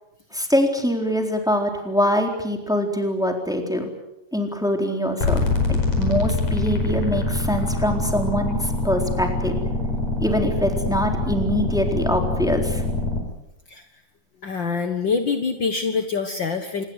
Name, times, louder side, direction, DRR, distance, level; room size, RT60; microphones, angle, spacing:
voice 1, 0.3-3.9 4.3-5.4 5.7-9.6 10.2-12.8, equal, ahead, 3 dB, 3.4 m, -24 dB
sound 1, 5.2-13.2, left 2 dB, 50° left, 6.0 m, -24 dB
voice 2, 14.4-16.8, left 5 dB, 65° left, 6 dB, 1.1 m, -25 dB
27.0 x 22.0 x 8.1 m, 0.88 s
omnidirectional pair, 4.5 m